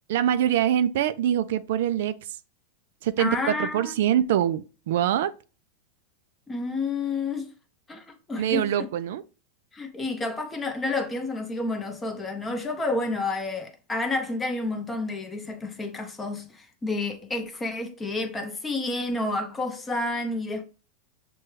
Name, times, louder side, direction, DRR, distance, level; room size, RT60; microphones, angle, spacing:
voice 1, 0.1-2.1 3.0-5.3 8.4-9.2, right 11 dB, 70° right, 0.3 m, -24 dB
voice 2, 3.2-3.9 6.5-7.5 7.9-8.7 9.7-20.6, left 2 dB, 15° left, 0.7 m, -30 dB
6.0 x 2.2 x 3.1 m
supercardioid pair, 145°, 0 cm